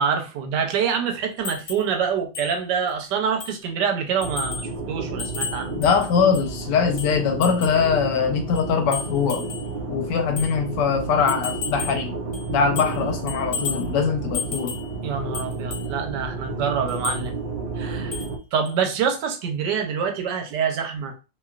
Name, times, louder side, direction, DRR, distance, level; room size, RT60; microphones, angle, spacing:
voice 1, 0.0-5.8 15.0-17.3 17.7-18.2 18.5-21.1, right 6 dB, 85° right, 1.3 m, -26 dB
sound 1, 1.4-1.9 2.3-2.5 2.9-3.0 3.4-3.7 4.2-4.7 5.2-6.5 7.0-7.8 8.5-9.7 10.4-10.5 11.3-12.0 12.3-13.0 13.3-13.9 14.3-14.9 15.3-15.9 16.9-17.2 18.1-18.4 18.6-18.8, left 6 dB, 45° left, 1.0 m, -33 dB
sound 2, 4.2-18.4, right 4 dB, 65° right, 0.5 m, -31 dB
voice 2, 5.7-9.4 9.9-12.1 12.5-14.7, left 6 dB, 90° left, 1.2 m, -22 dB
3.0 x 2.8 x 2.3 m
omnidirectional pair, 1.8 m